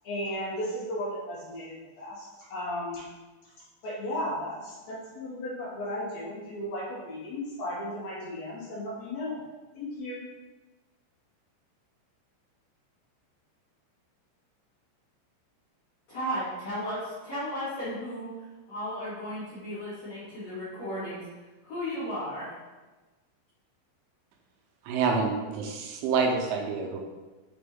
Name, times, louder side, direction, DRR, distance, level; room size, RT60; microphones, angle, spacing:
voice 1, 0.0-3.0 3.8-9.4 9.7-10.2, left 1 dB, 85° left, -7 dB, 1.5 m, -35 dB
voice 2, 16.1-21.3 21.6-22.5, equal, 50° left, -12 dB, 2.1 m, -35 dB
voice 3, 24.9-27.0, right 5 dB, 85° right, 1 dB, 3.2 m, -27 dB
6.7 x 4.3 x 3.7 m, 1.2 s
omnidirectional pair, 5.4 m